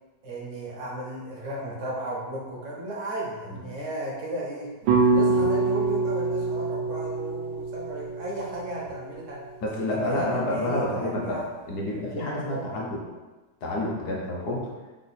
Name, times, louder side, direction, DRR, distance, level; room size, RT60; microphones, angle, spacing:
voice 1, 0.2-4.7 5.1-9.4 9.9-11.5 12.0-12.7, right 1 dB, 55° right, -3 dB, 0.9 m, -34 dB
sound 1, 4.9-9.1, right 3 dB, 80° right, 1.3 m, -25 dB
voice 2, 9.6-11.4 11.7-13.0 13.6-14.7, left 1 dB, 65° left, -3 dB, 1.2 m, -29 dB
3.7 x 2.4 x 4.1 m, 1.2 s
omnidirectional pair, 1.9 m